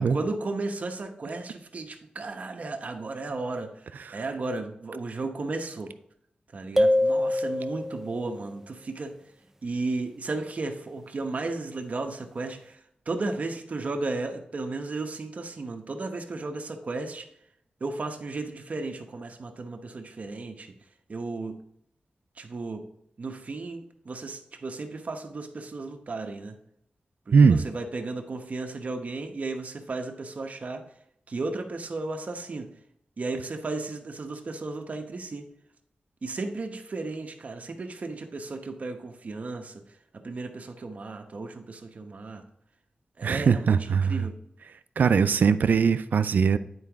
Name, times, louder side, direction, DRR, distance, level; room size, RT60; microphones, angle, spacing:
voice 1, 0.1-3.7 4.1-5.9 6.5-9.1 9.6-12.8 13.1-17.3 17.8-20.7 21.1-21.6 22.4-22.9 23.2-26.6 27.3-30.8 31.3-32.7 33.2-35.5 36.2-39.8 40.1-42.4 43.2-44.4 45.0-45.1, right 3 dB, 55° right, 4 dB, 1.0 m, -34 dB
sound 1, 6.8-8.2, left 1 dB, 15° right, 0.4 m, -24 dB
voice 2, 43.2-44.2 45.0-46.6, right 6 dB, 80° right, 12 dB, 0.4 m, -21 dB
9.6 x 4.8 x 3.5 m, 0.74 s
wide cardioid pair, 95°, 3 cm